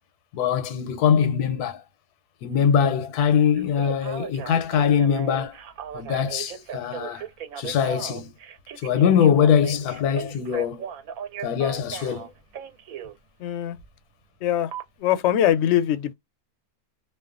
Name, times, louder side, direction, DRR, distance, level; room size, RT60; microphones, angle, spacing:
voice 1, 0.3-1.8 2.4-5.6 5.9-7.2 7.6-8.3 8.8-10.9 11.4-12.3, left 8 dB, 90° left, 1.1 m, -22 dB
Telephone, 3.5-13.1 14.7-14.8, right 8 dB, 75° right, 1.0 m, -37 dB
voice 2, 13.4-13.8 14.4-14.7 15.0-16.1, left 11 dB, 65° left, 0.7 m, -22 dB
2.5 x 2.2 x 2.4 m
omnidirectional pair, 1.6 m